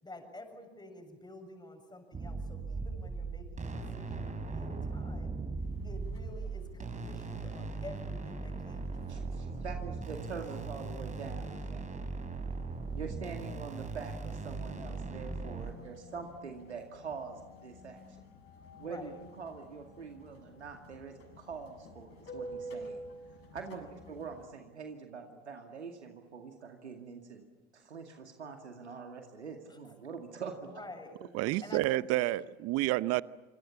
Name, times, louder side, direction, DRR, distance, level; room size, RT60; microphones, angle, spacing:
voice 1, 0.0-5.4 5.8-9.4 15.2-15.8 18.8-19.1 23.8-24.1 29.7-29.8 30.6-31.2 31.6-32.3, left 2 dB, 15° left, 7.4 m, -50 dB
sound 1, 2.1-15.7, right 4 dB, 20° right, 4.3 m, -39 dB
sound 2, 5.6-24.5, equal, 45° left, 7.8 m, -51 dB
voice 2, 9.1-12.1 12.9-18.3 18.8-23.0 23.5-27.5 27.7-30.8, right 5 dB, 85° right, 2.3 m, -44 dB
voice 3, 31.3-33.2, right 17 dB, 45° right, 0.8 m, -29 dB
27.5 x 26.5 x 7.2 m
figure-of-eight pair, 70°, 33 cm